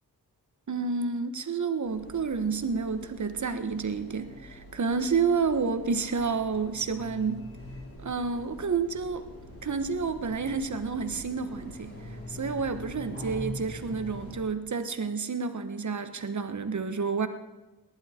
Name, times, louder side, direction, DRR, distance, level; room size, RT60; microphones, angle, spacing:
voice 1, 0.7-7.5 8.0-9.2 9.6-11.9 12.3-17.3, right 5 dB, 50° right, 9 dB, 1.3 m, -29 dB
sound 1, 1.8-14.4, left 1 dB, 40° left, 4.5 m, -44 dB
18.5 x 11.5 x 4.5 m, 1.1 s
cardioid pair, 65°, 37 cm